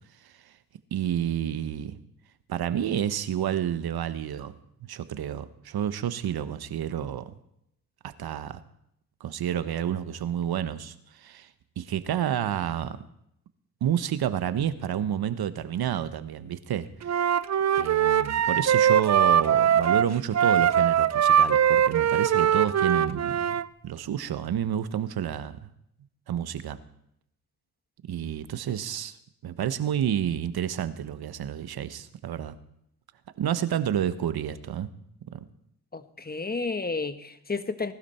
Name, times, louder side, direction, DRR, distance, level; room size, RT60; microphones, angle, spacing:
voice 1, 0.9-2.0 2.5-4.5 4.9-7.2 8.0-8.6 9.2-11.5 11.8-13.0 13.8-16.9 17.8-25.7 26.3-26.8 28.1-29.1 29.4-32.6 33.4-34.9 35.3-35.4, right 10 dB, 65° right, 12 dB, 1.2 m, -29 dB
Wind instrument woodwind instrument, 17.0-23.6, right 9 dB, 40° right, 0.6 m, -22 dB
voice 2, 35.9-37.9, left 4 dB, 25° left, 10 dB, 1.4 m, -31 dB
19.0 x 12.0 x 4.4 m, 0.78 s
supercardioid pair, 55°, 40 cm